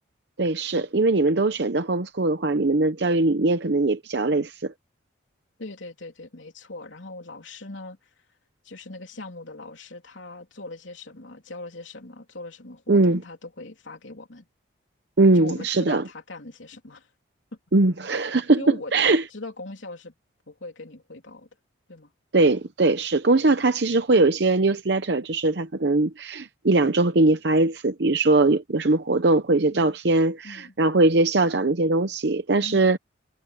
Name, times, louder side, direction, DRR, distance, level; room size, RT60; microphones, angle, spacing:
voice 1, 0.4-4.7 12.9-13.2 15.2-16.0 17.7-19.2 22.3-33.0, right 2 dB, 55° right, 0.8 m, -21 dB
voice 2, 5.6-8.1 8.6-14.5 15.3-17.1 18.1-18.9 19.3-20.1 20.5-21.5 21.9-22.1 29.7-30.0 30.4-30.7 32.6-32.9, left 2 dB, 75° left, 3.4 m, -40 dB
head